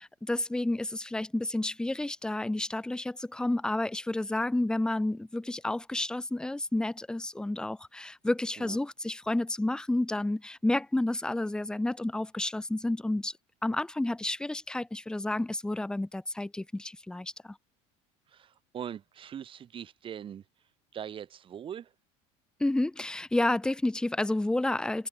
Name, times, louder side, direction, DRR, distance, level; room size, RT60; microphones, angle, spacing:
voice 1, 0.0-13.3 13.6-17.6 22.6-25.1, left 2 dB, 5° left, 0.9 m, -30 dB
voice 2, 18.3-20.4 20.9-21.9, right 9 dB, 35° right, 4.3 m, -41 dB
cardioid pair, 125°, 15 cm